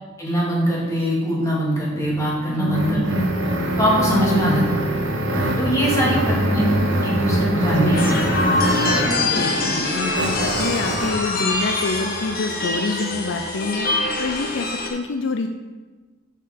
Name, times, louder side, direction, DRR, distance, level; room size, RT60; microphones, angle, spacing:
voice 1, 0.2-3.2 3.8-4.6 5.2-6.7 7.0-8.1 8.7-9.6, right 1 dB, 15° left, -6 dB, 2.4 m, -23 dB
sound 1, 2.0-9.2 10.1-11.2, right 1 dB, 70° right, 1.1 m, -24 dB
sound 2, 2.4-10.2, left 1 dB, 50° right, 2.2 m, -28 dB
voice 2, 2.6-3.1 4.3-4.6 6.1-6.5 7.6-8.1 9.2-15.5, left 3 dB, 65° left, 6 dB, 0.5 m, -27 dB
sound 3, 7.9-14.9, left 2 dB, 50° left, 1.2 m, -24 dB
6.7 x 6.5 x 5.2 m, 1.3 s
head